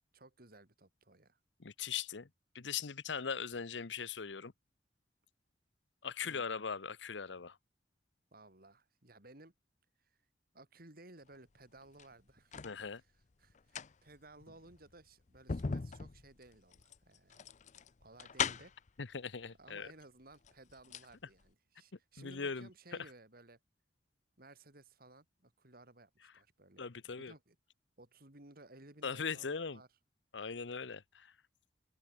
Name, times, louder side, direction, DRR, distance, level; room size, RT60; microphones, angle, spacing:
voice 1, 0.1-1.4 6.2-6.5 8.3-9.5 10.0-10.2 10.5-13.1 13.4-17.4 18.0-18.7 19.6-23.6 24.4-27.6 28.0-29.9, right 2 dB, 55° right, 3.5 m, -58 dB
voice 2, 1.6-2.3 2.5-4.5 6.0-7.6 12.6-13.0 19.0-19.9 22.2-22.7 26.8-27.3 29.0-29.8 30.3-31.3, left 6 dB, 90° left, 0.9 m, -40 dB
sound 1, 11.8-12.8 13.5-18.9 19.9-20.0 20.3-21.1 21.4-21.5, left 6 dB, 40° left, 0.6 m, -40 dB
open air
head